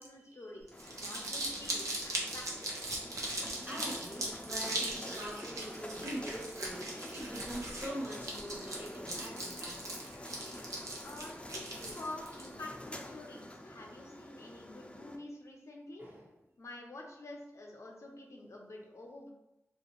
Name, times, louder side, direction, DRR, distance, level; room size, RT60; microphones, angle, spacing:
voice 1, 0.0-2.9 11.0-16.1 16.6-19.3, left 2 dB, 70° left, 0 dB, 0.6 m, -48 dB
sound 1, 0.7-15.2, left 1 dB, 20° left, 0.4 m, -47 dB
Crumpling crinkling, 0.7-12.5, right 1 dB, 90° right, 0.5 m, -39 dB
voice 2, 3.7-10.0 16.0-16.3, right 1 dB, 35° right, -3 dB, 1.1 m, -43 dB
2.4 x 2.3 x 3.1 m, 0.91 s
cardioid pair, 45°, 5 cm